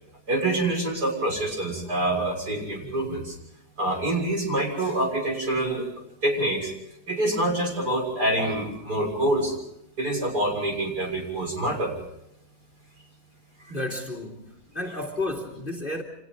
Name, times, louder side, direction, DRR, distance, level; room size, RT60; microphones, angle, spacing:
voice 1, 0.3-3.3 3.8-5.9 6.2-6.7 7.1-9.5 10.0-11.9 13.6-13.7, right 1 dB, 50° right, 0 dB, 7.2 m, -26 dB
voice 2, 13.7-16.0, left 2 dB, 25° left, 0 dB, 3.2 m, -32 dB
30.0 x 27.0 x 3.9 m, 0.81 s
omnidirectional pair, 2.2 m